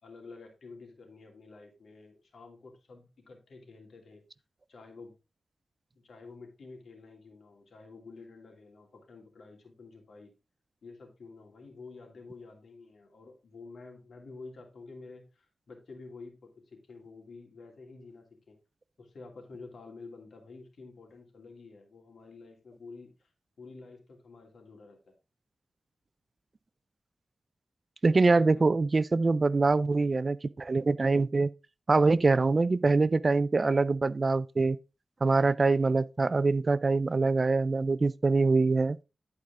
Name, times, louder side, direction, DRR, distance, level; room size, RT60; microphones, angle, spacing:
voice 1, 0.0-4.2 4.7-5.2 5.9-10.3 10.8-18.6 19.0-23.3 23.6-25.1 28.2-28.7, left 3 dB, 75° left, 2.6 m, -49 dB
voice 2, 28.0-31.5 31.9-34.8 35.2-39.0, right 3 dB, 40° right, 0.3 m, -24 dB
11.0 x 4.9 x 3.7 m
wide cardioid pair, 80°, 0 cm